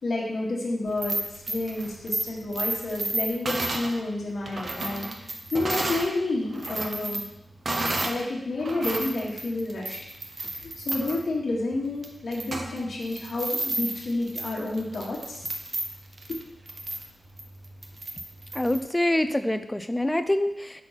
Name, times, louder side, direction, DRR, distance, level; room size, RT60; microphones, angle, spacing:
voice 1, 0.0-5.3 5.5-7.2 7.8-10.0 10.5-15.4 16.3-16.4, left 2 dB, 65° left, -4 dB, 1.3 m, -30 dB
sound 1, 0.9-6.1 6.5-8.2 8.6-18.8, right 2 dB, 45° right, 0.8 m, -33 dB
voice 2, 18.5-20.8, left 1 dB, 10° left, 9 dB, 0.4 m, -25 dB
5.9 x 5.6 x 4.0 m, 0.85 s
wide cardioid pair, 120°, 0 cm